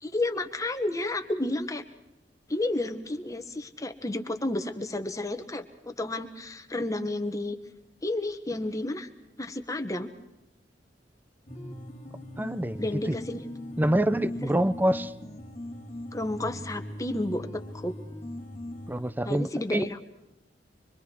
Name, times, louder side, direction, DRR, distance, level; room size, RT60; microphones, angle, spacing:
voice 1, 0.0-1.8 2.5-7.6 8.0-9.1 9.4-10.1 12.8-13.4 14.4-14.5 16.1-17.9 19.2-20.0, left 2 dB, 20° left, 6 dB, 1.5 m, -31 dB
sound 1, 11.5-19.1, left 1 dB, 40° left, 2.5 m, -40 dB
voice 2, 12.4-13.2 13.8-15.1 18.9-19.8, right 1 dB, 10° right, 15 dB, 0.7 m, -26 dB
25.0 x 24.5 x 4.6 m, 0.93 s
head